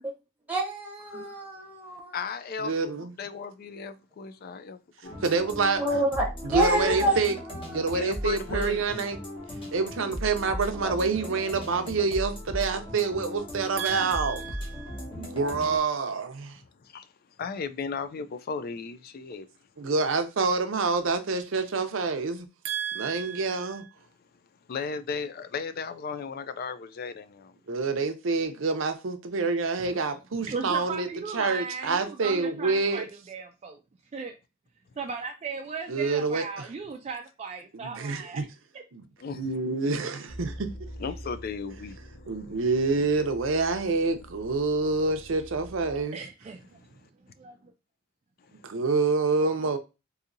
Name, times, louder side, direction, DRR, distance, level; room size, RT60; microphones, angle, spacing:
voice 1, 0.5-2.3 5.8-8.2 10.8-11.1, right 1 dB, 10° right, 0.9 m, -29 dB
voice 2, 1.1-1.4 2.1-4.8 5.0-5.2 7.9-8.9 9.5-9.7 16.8-17.1 17.4-19.5 24.7-27.5 39.2-39.5 41.0-42.0 42.3-42.4 46.7-46.8 48.5-48.6, left 5 dB, 50° left, 0.3 m, -36 dB
voice 3, 2.6-3.1 5.2-5.8 6.5-7.3 7.7-9.2 9.7-16.6 19.8-23.8 27.7-31.1 31.3-33.1 35.9-36.7 37.7-38.4 38.9-39.0 39.3-40.7 42.3-46.2 48.6-49.8, right 4 dB, 75° right, 0.6 m, -27 dB
sound 1, 5.0-15.8, equal, 30° left, 1.0 m, -37 dB
voice 4, 30.4-33.8 34.1-34.3 35.0-38.5 45.9-46.8 47.4-47.6, right 5 dB, 35° right, 0.3 m, -37 dB
sound 2, 40.3-46.0, equal, 85° left, 1.4 m, -45 dB
4.0 x 2.7 x 2.5 m
head